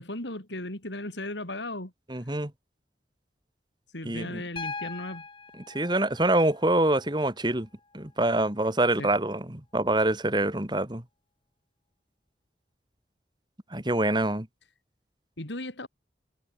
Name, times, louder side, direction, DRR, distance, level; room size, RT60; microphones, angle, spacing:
voice 1, 0.0-1.9 3.9-5.3 9.0-9.1 15.4-15.9, left 1 dB, 80° left, 4.9 m, -36 dB
voice 2, 2.1-2.5 4.1-4.4 5.7-7.7 7.9-11.0 13.7-14.5, right 1 dB, 25° right, 2.4 m, -25 dB
Piano, 4.6-8.6 10.1-10.2, left 4 dB, 30° left, 3.8 m, -42 dB
head